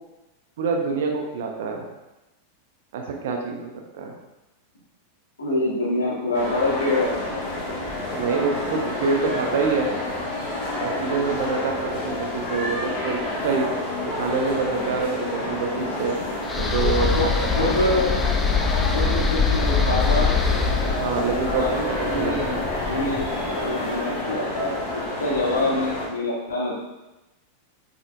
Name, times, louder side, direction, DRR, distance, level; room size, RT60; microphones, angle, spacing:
voice 1, 0.6-1.8 2.9-4.2 8.1-9.9 10.8-13.7 14.0-17.9 20.9-22.8, right 4 dB, 55° right, 2 dB, 1.0 m, -26 dB
voice 2, 5.4-7.1 17.1-17.2 17.6-18.2 18.9-20.4 21.5-22.6 22.9-23.3 23.6-26.7, left 1 dB, 70° left, -5 dB, 2.3 m, -25 dB
sound 1, 6.3-26.1, left 2 dB, 45° left, 1.8 m, -29 dB
sound 2, 16.5-23.6, left 5 dB, 15° left, 0.7 m, -24 dB
8.0 x 5.7 x 2.5 m, 1.0 s
figure-of-eight pair, 90°, 0 cm